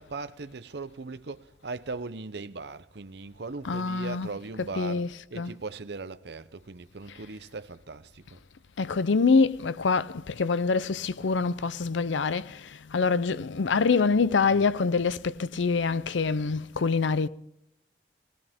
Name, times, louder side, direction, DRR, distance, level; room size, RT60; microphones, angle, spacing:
voice 1, 0.0-8.4, right 3 dB, 65° right, 0.7 m, -39 dB
voice 2, 3.6-5.6 7.1-7.2 8.8-17.3, left 4 dB, 90° left, 0.6 m, -26 dB
20.0 x 17.5 x 3.6 m
head